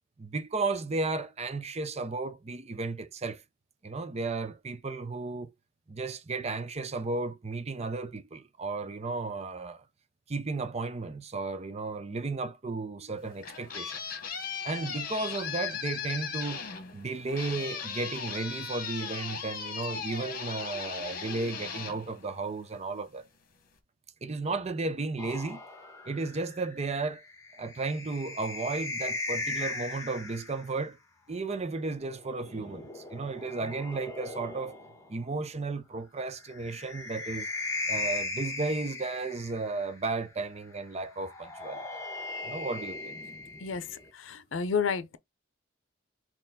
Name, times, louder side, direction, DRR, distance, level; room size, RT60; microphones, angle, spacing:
voice 1, 0.2-3.4 3.8-5.5 5.9-9.8 10.3-14.0 14.6-16.6 16.9-23.3 24.2-25.6 26.1-27.2 27.5-31.0 31.3-34.8 35.1-37.5 37.9-41.9 42.4-43.2, right 3 dB, 35° right, 0.6 m, -34 dB
sound 1, 13.2-22.9, left 7 dB, 50° left, 1.1 m, -38 dB
sound 2, 25.2-30.7 32.1-35.1 36.4-39.9 41.2-44.1, left 2 dB, 15° left, 1.5 m, -38 dB
voice 2, 43.6-45.2, left 6 dB, 85° left, 0.6 m, -31 dB
4.5 x 2.9 x 3.7 m
head